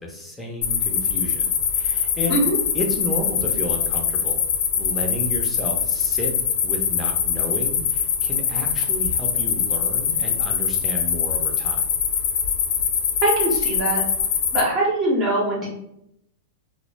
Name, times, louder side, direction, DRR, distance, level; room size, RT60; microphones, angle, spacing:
voice 1, 0.0-1.5 1.7-2.4 2.7-4.4 4.7-6.3 6.6-11.8, left 1 dB, 5° left, 0 dB, 0.6 m, -31 dB
sound 1, 0.6-14.6, left 7 dB, 65° left, 0.4 m, -23 dB
voice 2, 13.2-14.0 14.5-15.7, right 1 dB, 30° right, -3 dB, 0.7 m, -22 dB
2.1 x 2.1 x 3.1 m, 0.76 s
hypercardioid pair, 115°, 0 cm